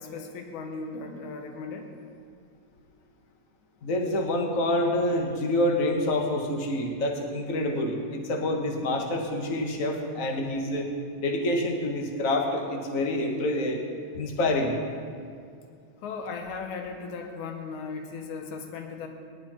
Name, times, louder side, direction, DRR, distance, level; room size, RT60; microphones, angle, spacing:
voice 1, 0.0-1.9 16.0-19.1, left 4 dB, 80° left, 4 dB, 2.5 m, -37 dB
voice 2, 3.8-10.9 11.2-13.8 14.1-14.7, left 1 dB, 40° left, 2 dB, 1.3 m, -27 dB
18.5 x 12.0 x 4.4 m, 2.2 s
omnidirectional pair, 3.4 m